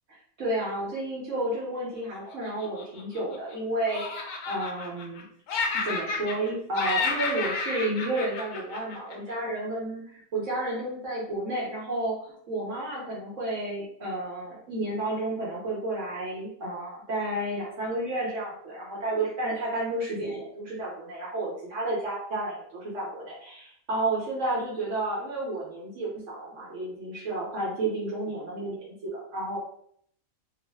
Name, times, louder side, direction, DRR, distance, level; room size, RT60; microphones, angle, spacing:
voice 1, 0.1-5.2 5.8-29.6, right 1 dB, 60° right, -6 dB, 1.1 m, -31 dB
Laughter, 2.3-3.5 3.9-5.2 5.5-6.5 6.7-9.3, left 4 dB, 90° left, 1.1 m, -31 dB
3.0 x 2.0 x 3.3 m, 0.66 s
omnidirectional pair, 1.5 m